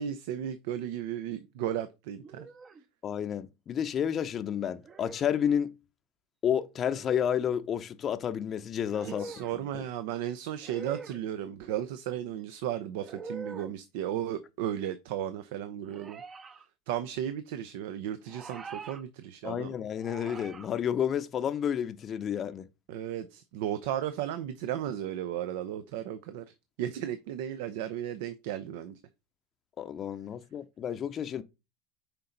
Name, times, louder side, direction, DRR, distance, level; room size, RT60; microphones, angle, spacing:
voice 1, 0.0-2.5 9.0-16.2 16.9-19.7 22.9-29.0, right 11 dB, 75° right, 0.6 m, -35 dB
sound 1, 2.2-2.8 4.8-5.4 6.9-7.5 8.9-9.6 10.6-11.2 13.0-13.7 15.9-16.6 18.3-19.0 20.0-20.7, right 4 dB, 25° right, 0.6 m, -44 dB
voice 2, 3.0-5.7 6.4-9.3 9.7-9.8 19.4-22.7 29.8-31.4, left 9 dB, 35° left, 0.6 m, -30 dB
6.7 x 4.5 x 3.9 m
supercardioid pair, 120°, 0 cm